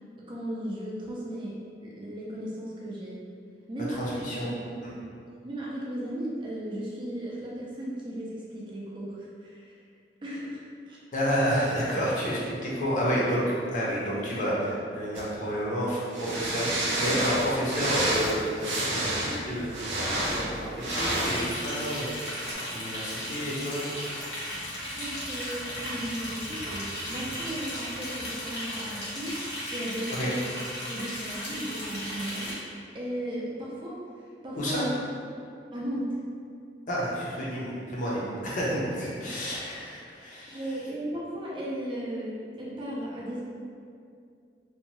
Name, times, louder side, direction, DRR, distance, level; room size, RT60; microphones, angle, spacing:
voice 1, 0.2-3.2 3.7-4.0 4.3-4.6 4.9-5.0 5.4-9.7 10.2-10.6 10.9-11.0 25.0-30.3 30.9-34.0 34.4-34.8 35.7-36.2 40.5-43.4, right 1 dB, 25° right, -6 dB, 0.4 m, -36 dB
voice 2, 4.0-4.5 4.8-4.9 11.1-19.7 20.4-22.1 22.7-23.9 24.6-24.7 30.1-30.3 34.6-34.9 36.9-40.6, equal, 45° left, -6 dB, 0.6 m, -30 dB
sound 1, 15.1-15.3 16.1-21.5 22.4-22.5, right 1 dB, 85° right, 0.5 m, -29 dB
Liquid, 20.9-32.5, equal, 85° left, 0.9 m, -36 dB
2.6 x 2.2 x 2.9 m, 2.4 s
head